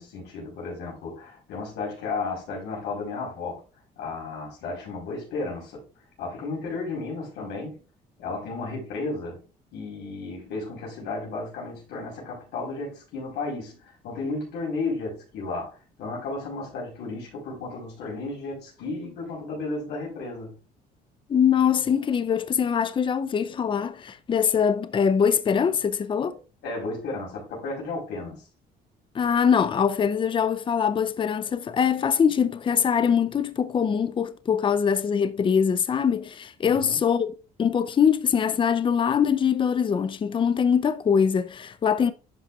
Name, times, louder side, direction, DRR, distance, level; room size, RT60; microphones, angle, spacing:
voice 1, 0.0-3.6 4.0-5.8 6.2-7.8 8.2-9.4 9.7-20.5 26.6-28.4 36.6-37.0, left 3 dB, 85° left, 4.6 m, -33 dB
voice 2, 21.3-26.3 29.1-37.3 37.6-42.1, left 7 dB, 30° left, 0.6 m, -23 dB
11.0 x 5.8 x 2.5 m
cardioid pair, 110°, 17 cm